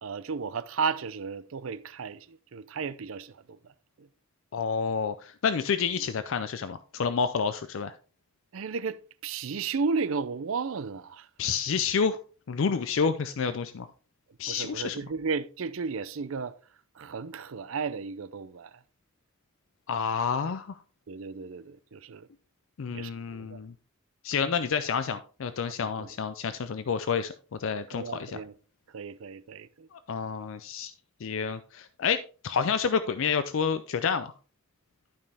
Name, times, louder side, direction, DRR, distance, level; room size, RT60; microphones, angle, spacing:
voice 1, 0.0-3.3 4.0-4.1 8.5-9.0 9.2-11.3 14.5-16.5 17.0-18.7 21.1-22.3 22.9-23.6 24.5-24.6 26.0-26.1 27.9-28.5 28.9-29.9, right 5 dB, 65° right, 0.5 m, -34 dB
voice 2, 4.5-7.9 11.4-12.2 12.5-13.9 14.4-15.0 19.9-20.8 22.8-23.7 24.2-27.3 27.6-28.4 29.9-30.9 31.2-34.3, left 6 dB, 60° left, 0.4 m, -29 dB
11.5 x 5.4 x 3.3 m
head